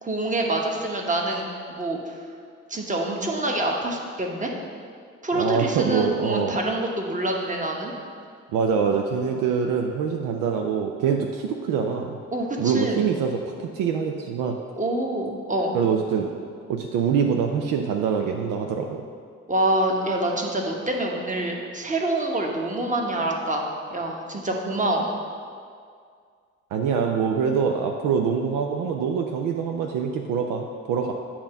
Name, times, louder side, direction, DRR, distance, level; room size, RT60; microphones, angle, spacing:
voice 1, 0.0-2.2 2.7-4.5 5.2-7.9 12.3-13.1 14.8-15.7 19.5-25.1, right 1 dB, 20° right, 0 dB, 1.1 m, -26 dB
voice 2, 5.3-6.6 8.5-12.2 12.6-14.6 15.7-16.3 16.7-19.0 26.7-31.1, right 6 dB, 60° right, 2 dB, 0.5 m, -24 dB
8.5 x 2.9 x 5.6 m, 2.2 s
figure-of-eight pair, 40°, 37 cm